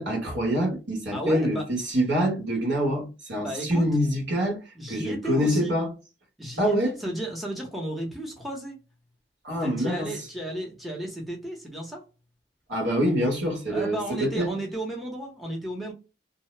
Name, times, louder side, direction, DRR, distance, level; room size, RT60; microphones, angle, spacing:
voice 1, 0.0-4.6 4.9-5.9 6.6-6.9 9.4-10.1 12.7-14.5, equal, 75° right, 1.3 m, -25 dB
voice 2, 1.1-1.7 3.4-3.9 4.7-5.8 6.4-8.8 9.6-12.0 13.7-15.9, right 1 dB, ahead, 0.7 m, -34 dB
2.7 x 2.0 x 3.1 m
head